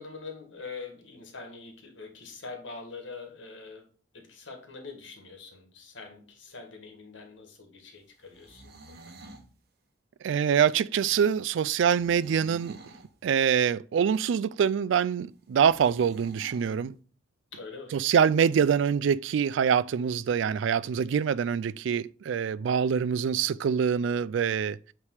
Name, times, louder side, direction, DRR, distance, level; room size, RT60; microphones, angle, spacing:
voice 1, 0.0-3.9 4.1-9.1 17.5-17.9, left 4 dB, 80° left, 1.8 m, -44 dB
sound 1, 8.2-9.5 11.8-13.1 15.6-16.7, right 2 dB, 55° right, 1.0 m, -49 dB
voice 2, 10.2-12.8 13.2-16.9 17.9-24.8, right 7 dB, 80° right, 0.3 m, -25 dB
8.2 x 3.4 x 4.8 m
head